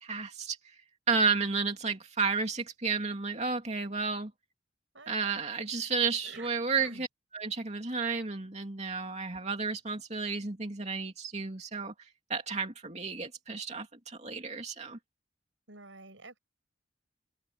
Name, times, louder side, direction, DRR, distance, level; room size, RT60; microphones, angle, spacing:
voice 1, 0.0-0.6 1.1-4.3 5.1-7.1 7.3-15.0, right 4 dB, 35° right, 2.7 m, -32 dB
voice 2, 4.9-5.5 6.2-6.5 6.8-7.1 15.7-16.4, right 3 dB, 90° right, 7.8 m, -49 dB
open air
head